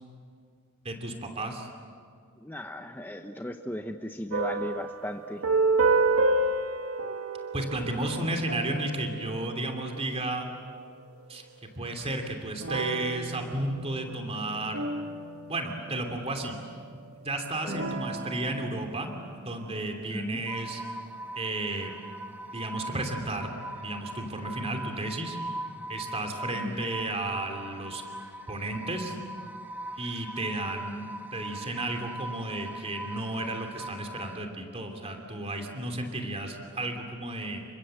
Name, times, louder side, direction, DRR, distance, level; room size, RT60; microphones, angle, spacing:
voice 1, 0.8-1.7 7.5-10.5 11.3-11.5 11.7-14.9 15.5-16.6 17.2-19.1 19.4-20.8 21.3-21.9 22.5-25.4 25.9-28.0 28.5-29.2 29.9-37.6, right 1 dB, 30° right, 4 dB, 2.9 m, -33 dB
voice 2, 2.4-5.4 17.6-17.8 20.1-20.4 26.5-26.8, left 1 dB, 10° left, 5 dB, 0.8 m, -37 dB
sound 1, 4.3-10.3 12.6-16.4 17.7-20.3, right 3 dB, 85° right, 1.7 m, -30 dB
sound 2, 20.5-34.4, right 1 dB, 10° right, 1.9 m, -41 dB
29.5 x 24.5 x 7.8 m, 2.1 s
head